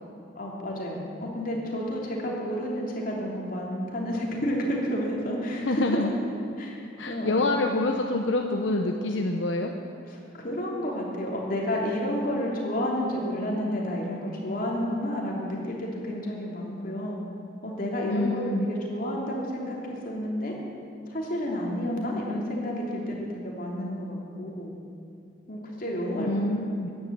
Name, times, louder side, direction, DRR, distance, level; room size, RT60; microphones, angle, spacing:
voice 1, 0.3-6.0 6.6-6.8 7.1-7.5 10.1-17.2 17.6-19.8 20.0-20.5 21.1-24.7 25.5-26.6, equal, 50° left, -2 dB, 3.1 m, -30 dB
voice 2, 5.6-6.1 7.0-9.7 18.1-18.7 26.2-26.9, left 2 dB, 80° left, 3 dB, 0.9 m, -26 dB
15.0 x 11.0 x 7.5 m, 2.7 s
head